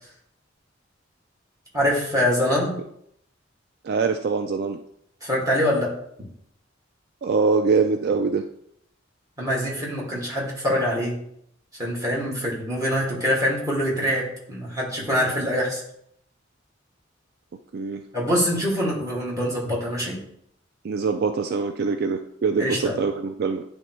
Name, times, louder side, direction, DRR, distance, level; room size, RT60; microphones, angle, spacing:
voice 1, 1.7-2.8 5.2-5.9 9.4-11.2 11.8-15.8 18.1-20.2 22.6-23.0, equal, 20° right, -5 dB, 1.9 m, -24 dB
voice 2, 3.8-4.8 7.2-8.4 17.7-18.0 20.8-23.6, right 4 dB, 55° right, 6 dB, 0.3 m, -23 dB
10.0 x 3.4 x 3.0 m, 0.72 s
head